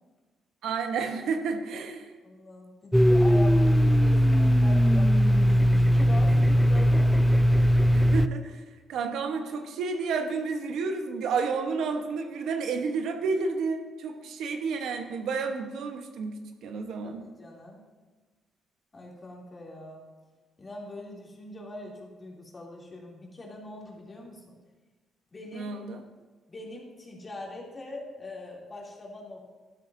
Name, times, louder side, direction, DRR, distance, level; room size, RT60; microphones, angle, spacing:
voice 1, 0.6-2.1 7.9-8.6 8.9-16.4 16.6-17.2 25.5-26.0, right 4 dB, 80° right, 5 dB, 1.0 m, -31 dB
voice 2, 2.2-7.2 17.0-17.8 18.9-20.1 20.6-24.5 25.3-25.7 26.5-29.6, left 1 dB, 30° left, -3 dB, 2.8 m, -42 dB
Domestic sounds home sounds, 2.9-8.3, equal, ahead, 0.3 m, -20 dB
12.0 x 11.0 x 2.7 m, 1.3 s
cardioid pair, 90°, 0 cm